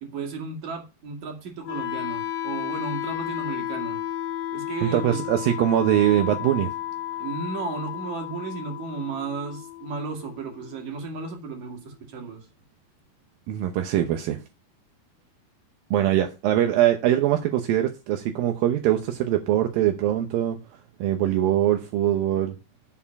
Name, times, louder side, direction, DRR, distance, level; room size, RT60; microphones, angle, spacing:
voice 1, 0.0-4.0 4.5-5.2 7.2-12.5, right 5 dB, 50° right, 3.1 m, -34 dB
Wind instrument woodwind instrument, 1.6-11.6, left 12 dB, 80° left, 2.8 m, -33 dB
voice 2, 4.8-6.7 13.5-14.4 15.9-20.6 21.0-22.6, right 12 dB, 75° right, 2.2 m, -22 dB
13.0 x 4.4 x 5.8 m
omnidirectional pair, 5.0 m